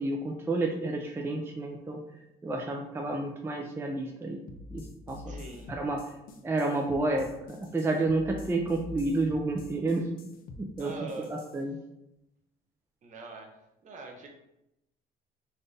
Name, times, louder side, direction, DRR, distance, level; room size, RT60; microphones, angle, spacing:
voice 1, 0.0-2.0 2.4-4.4 4.7-5.4 5.7-6.0 6.4-7.3 7.7-10.1 10.6-10.9 11.3-11.8, right 2 dB, 15° right, 1 dB, 0.4 m, -30 dB
sound 1, 4.5-11.6, left 3 dB, 60° left, 0.6 m, -46 dB
voice 2, 5.3-5.7 10.8-11.3 13.0-13.5 13.8-14.3, right 3 dB, 45° right, 1 dB, 0.8 m, -42 dB
4.1 x 2.6 x 3.3 m, 0.86 s
cardioid pair, 110°, 17 cm